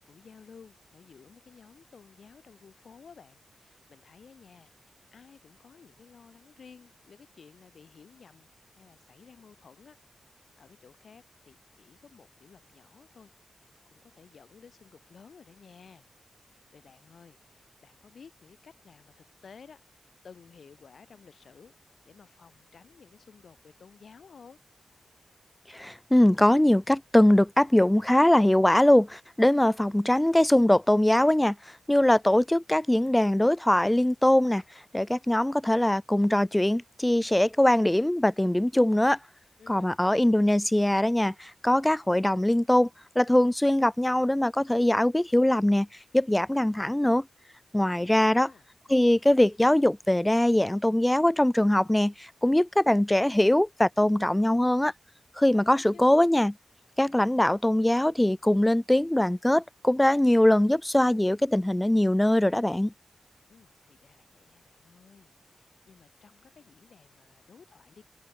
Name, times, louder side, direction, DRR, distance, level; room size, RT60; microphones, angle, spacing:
voice 1, 0.1-10.0 10.6-13.6 13.9-16.0 16.4-19.8 20.2-21.7 22.0-24.6 39.6-39.9 47.7-48.7 55.5-56.2 63.5-68.0, left 6 dB, 75° left, 2.4 m, -54 dB
voice 2, 25.7-31.6 31.9-34.6 34.9-39.2 39.7-42.9 43.2-45.9 46.1-47.2 47.7-48.5 48.9-54.9 55.4-56.5 57.0-62.9, left 1 dB, 10° left, 0.3 m, -22 dB
cardioid pair, 60°, 0 cm